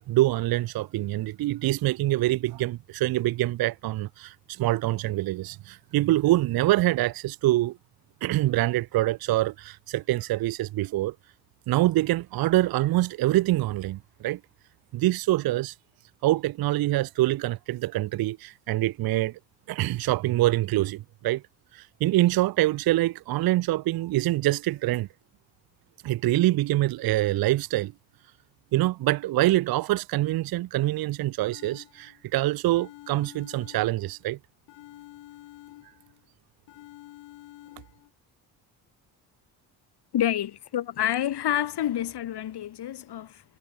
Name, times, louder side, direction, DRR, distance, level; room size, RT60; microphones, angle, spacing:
voice 1, 0.1-7.8 8.2-11.1 11.7-14.4 14.9-15.7 16.2-19.3 19.7-21.4 21.7-25.1 26.0-27.9 28.7-34.4, right 16 dB, 55° right, 0.6 m, -25 dB
sound 1, 31.5-32.3 32.7-34.3 34.7-36.3 36.7-38.1, left 17 dB, 80° left, 3.6 m, -49 dB
voice 2, 40.1-43.4, left 11 dB, 65° left, 2.6 m, -28 dB
supercardioid pair, 60°, 43 cm